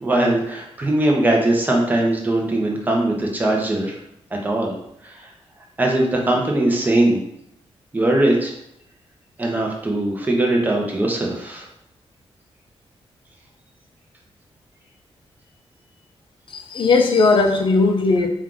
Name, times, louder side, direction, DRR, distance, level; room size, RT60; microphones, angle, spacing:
voice 1, 0.0-4.0 4.4-4.7 5.0-5.2 5.8-7.2 7.9-8.5 9.4-11.7, right 1 dB, 15° right, 0 dB, 0.7 m, -20 dB
voice 2, 16.5-18.3, left 3 dB, 50° left, 4 dB, 0.5 m, -17 dB
4.4 x 2.4 x 3.7 m, 0.77 s
wide cardioid pair, 170°, 10 cm